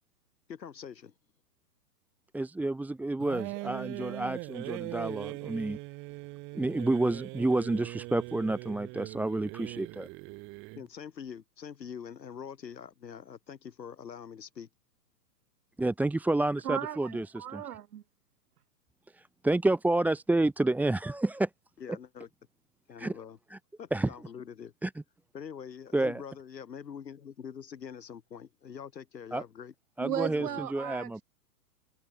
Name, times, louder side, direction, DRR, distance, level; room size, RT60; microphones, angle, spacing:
voice 1, 0.5-1.1 10.7-14.7 21.8-22.3 22.9-23.4 23.8-24.7 25.3-29.7 30.4-30.6, left 7 dB, 85° left, 6.5 m, -44 dB
voice 2, 2.3-5.8 6.5-10.1 15.8-17.6 19.1-21.5 23.0-23.1 23.5-23.6 23.9-24.1 24.8-24.9 25.9-26.2 29.3-29.4 30.0-31.2, right 2 dB, 5° right, 1.5 m, -29 dB
sound 1, 3.2-10.9, right 24 dB, 25° right, 1.2 m, -41 dB
voice 3, 16.6-18.0 30.0-31.2, right 10 dB, 65° right, 5.1 m, -36 dB
hypercardioid pair, 145°, 49 cm